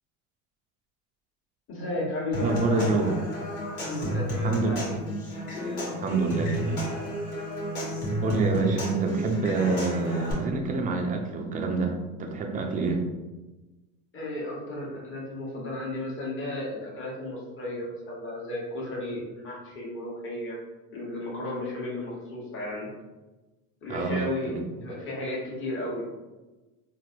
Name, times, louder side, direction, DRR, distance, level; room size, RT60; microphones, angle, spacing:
voice 1, 1.7-3.1 3.7-5.0 14.1-20.6 20.9-22.9 23.8-26.0, left 1 dB, 25° left, -4 dB, 1.1 m, -34 dB
Human voice / Acoustic guitar / Percussion, 2.3-10.3, equal, 75° left, 1.5 m, -31 dB
voice 2, 2.4-3.1 4.4-4.9 6.0-6.9 8.2-13.0 23.9-24.2, right 4 dB, 20° right, 2 dB, 0.4 m, -27 dB
3.2 x 2.6 x 2.5 m, 1.1 s
hypercardioid pair, 85°, 44 cm